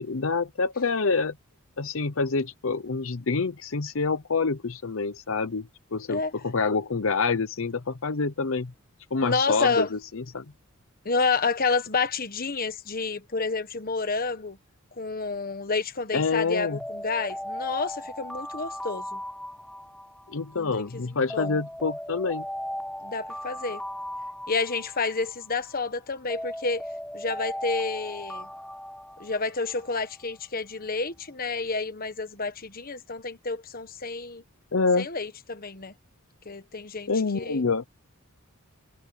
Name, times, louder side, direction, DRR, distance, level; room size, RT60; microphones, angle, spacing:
voice 1, 0.0-1.4 1.8-8.7 9.1-10.5 16.1-16.8 20.3-22.5 34.7-35.1 37.1-37.9, left 4 dB, 65° left, 0.8 m, -27 dB
voice 2, 9.2-9.9 11.0-14.6 15.0-19.2 20.5-21.0 21.3-21.6 23.0-23.8 24.5-26.8 27.1-28.5 29.2-34.4 35.0-35.9 36.4-37.6, left 4 dB, 40° left, 1.4 m, -29 dB
Alarm, 16.6-20.8 21.3-25.8 26.3-30.1, equal, 5° left, 3.4 m, -37 dB
head